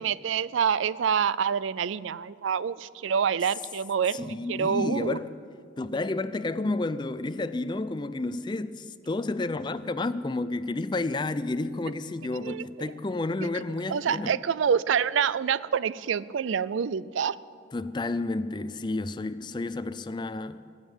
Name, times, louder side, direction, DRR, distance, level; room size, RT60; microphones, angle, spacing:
voice 1, 0.0-5.2 12.3-12.9 13.4-13.6 13.9-17.4, right 7 dB, 85° right, 0.4 m, -27 dB
voice 2, 4.1-5.3 5.8-14.3 17.7-20.6, left 2 dB, 25° left, 0.4 m, -31 dB
21.5 x 7.4 x 9.1 m
head